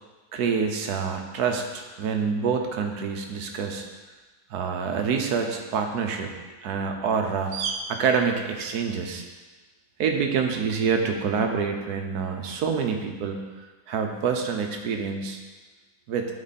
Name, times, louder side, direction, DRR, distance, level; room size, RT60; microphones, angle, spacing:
voice 1, 0.3-3.8 4.5-6.3 6.6-9.2 10.0-13.4 13.9-15.4 16.1-16.3, right 6 dB, 90° right, 4 dB, 1.4 m, -26 dB
12.5 x 4.3 x 4.2 m, 1.3 s
omnidirectional pair, 1.6 m